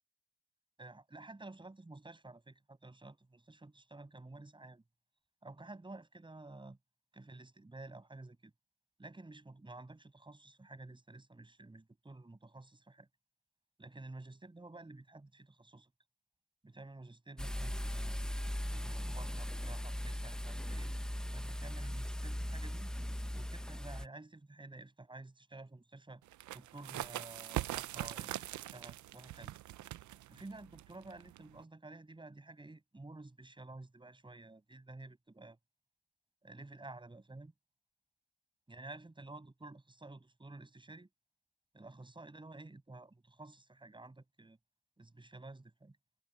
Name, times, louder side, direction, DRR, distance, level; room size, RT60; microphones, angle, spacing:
voice 1, 0.8-4.8 5.4-6.8 7.1-8.5 9.0-13.1 13.8-15.9 16.6-18.2 18.7-20.9 21.3-22.9 23.3-26.2 26.5-29.5 30.3-35.6 36.4-37.5 38.7-41.1 41.7-44.6 45.0-46.0, right 2 dB, 15° right, 7.4 m, -52 dB
sound 1, 17.4-24.1, equal, ahead, 0.9 m, -39 dB
Pushing some gravel off a small hill, 26.3-31.6, right 15 dB, 70° right, 0.7 m, -42 dB
cardioid pair, 90°, 30 cm